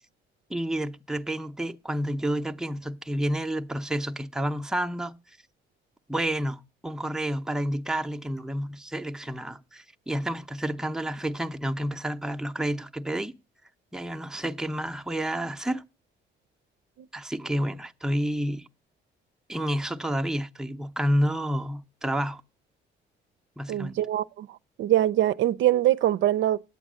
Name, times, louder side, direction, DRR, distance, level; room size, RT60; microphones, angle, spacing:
voice 1, 0.5-5.1 6.1-13.3 13.9-15.8 17.1-18.7 19.5-22.4 23.6-24.0, equal, 5° right, 0.6 m, -30 dB
voice 2, 23.7-26.6, right 13 dB, 75° right, 0.5 m, -23 dB
9.3 x 8.1 x 6.2 m
cardioid pair, 90°, 20 cm